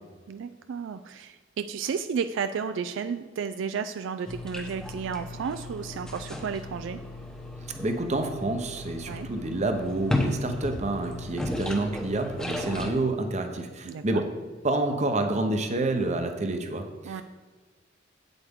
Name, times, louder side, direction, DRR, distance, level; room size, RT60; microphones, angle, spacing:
voice 1, 0.3-7.0 9.1-9.3 13.8-14.2 17.0-17.2, right 6 dB, 75° right, 10 dB, 0.3 m, -32 dB
sound 1, 4.3-12.9, left 1 dB, 5° left, 0.8 m, -34 dB
voice 2, 7.8-14.3 14.6-17.2, right 2 dB, 35° right, 6 dB, 0.8 m, -28 dB
8.2 x 7.9 x 3.6 m, 1.5 s
head